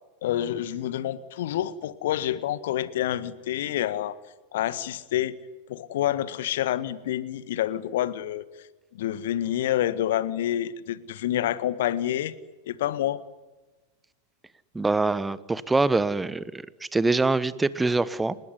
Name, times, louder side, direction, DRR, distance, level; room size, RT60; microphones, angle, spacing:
voice 1, 0.2-4.2 4.5-5.4 5.7-8.4 8.9-12.4 12.6-13.2, left 12 dB, 55° left, 15 dB, 1.7 m, -28 dB
voice 2, 14.7-16.6 16.9-18.3, right 3 dB, 10° right, 18 dB, 1.2 m, -24 dB
30.0 x 19.5 x 9.8 m, 1.2 s
figure-of-eight pair, 90°, 0 cm